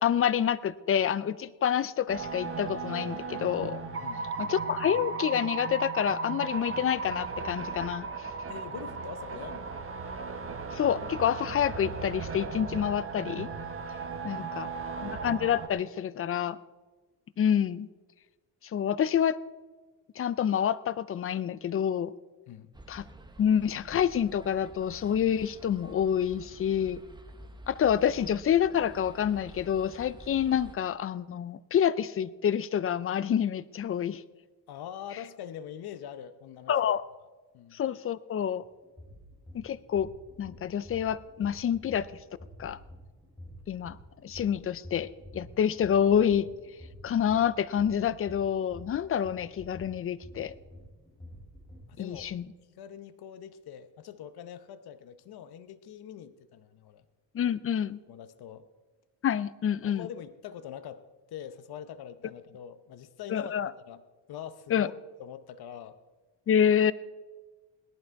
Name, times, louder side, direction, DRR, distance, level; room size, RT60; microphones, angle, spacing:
voice 1, 0.0-3.8 4.4-8.1 10.7-13.5 14.2-14.7 15.0-16.6 17.4-17.9 18.7-19.4 20.2-22.1 22.9-23.0 23.4-27.0 27.7-34.2 36.7-37.0 37.7-38.6 39.5-40.1 40.4-42.1 42.6-42.8 43.7-44.0 44.2-46.5 47.0-50.5 52.0-52.5 57.3-58.0 59.2-60.1 63.3-63.7 64.7-64.9 66.5-66.9, left 9 dB, 35° left, 18 dB, 0.4 m, -27 dB
sound 1, 2.1-15.7, right 4 dB, 30° right, 1.3 m, -36 dB
voice 2, 4.0-4.4 8.5-9.8 14.1-15.0 22.5-22.8 34.7-36.8 37.5-37.8 51.9-52.4 52.8-57.1 58.1-58.7 59.8-61.0 61.3-64.0 64.3-64.9 65.2-66.0, left 9 dB, 60° left, 12 dB, 0.8 m, -44 dB
sound 2, 22.7-30.8, right 2 dB, 10° right, 1.0 m, -49 dB
sound 3, 38.6-52.2, equal, 10° left, 4.6 m, -49 dB
18.0 x 11.0 x 4.6 m, 1.3 s
cardioid pair, 125°, 43 cm